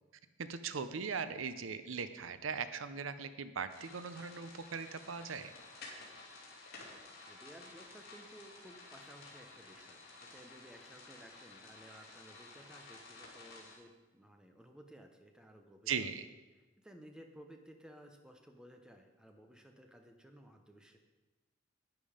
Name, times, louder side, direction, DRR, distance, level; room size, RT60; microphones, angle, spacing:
voice 1, 0.4-5.5 15.9-16.3, right 6 dB, 80° right, 12 dB, 0.6 m, -39 dB
sound 1, 3.7-13.8, left 3 dB, 50° left, 2.9 m, -53 dB
voice 2, 7.2-16.1 16.8-21.0, equal, 5° right, 4 dB, 0.9 m, -57 dB
10.5 x 9.3 x 5.0 m, 1.2 s
head